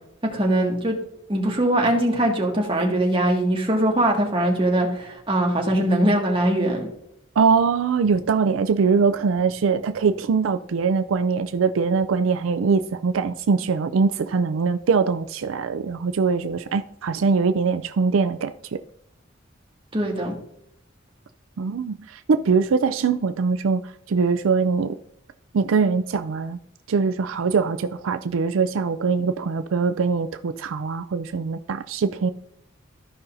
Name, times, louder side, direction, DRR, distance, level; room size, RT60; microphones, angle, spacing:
voice 1, 0.3-1.0 1.3-6.9 19.9-20.3, right 1 dB, 25° right, -1 dB, 1.9 m, -21 dB
voice 2, 7.4-18.8 21.6-23.8 24.1-25.0 25.5-26.6 26.9-32.3, right 5 dB, 80° right, 9 dB, 0.4 m, -22 dB
14.0 x 5.5 x 2.6 m, 0.78 s
head